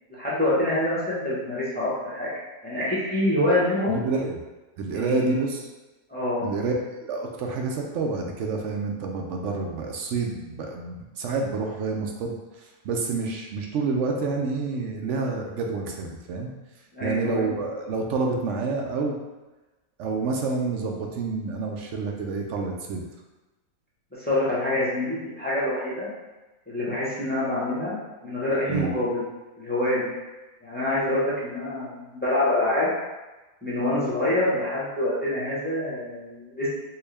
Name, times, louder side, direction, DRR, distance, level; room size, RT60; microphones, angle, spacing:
voice 1, 0.2-2.3 2.6-4.0 4.9-5.4 6.1-6.5 16.9-17.5 24.2-26.1 26.7-28.0 28.2-29.2 29.6-30.1 30.6-32.9 33.6-36.7, left 1 dB, 10° left, -9 dB, 0.9 m, -26 dB
voice 2, 3.9-4.4 4.8-5.6 6.4-16.5 17.0-19.2 20.0-23.0 28.7-28.9, right 4 dB, 65° right, 1 dB, 0.8 m, -28 dB
4.4 x 2.1 x 3.3 m, 1.1 s
omnidirectional pair, 1.5 m